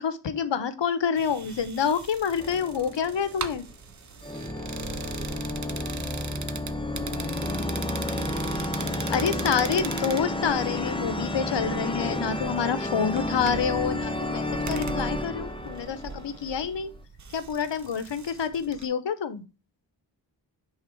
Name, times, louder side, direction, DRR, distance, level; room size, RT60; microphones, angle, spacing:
voice 1, 0.0-3.6 9.1-16.9 17.3-19.4, left 7 dB, 70° left, 14 dB, 0.8 m, -28 dB
sound 1, 1.2-18.9, right 5 dB, 40° right, 0.6 m, -40 dB
sound 2, 2.4-3.6 4.2-16.8, left 2 dB, 10° left, 0.7 m, -31 dB
voice 2, 4.6-6.9, left 2 dB, 40° left, 2 dB, 1.8 m, -48 dB
5.8 x 3.7 x 4.4 m, 0.31 s
wide cardioid pair, 85°, 45 cm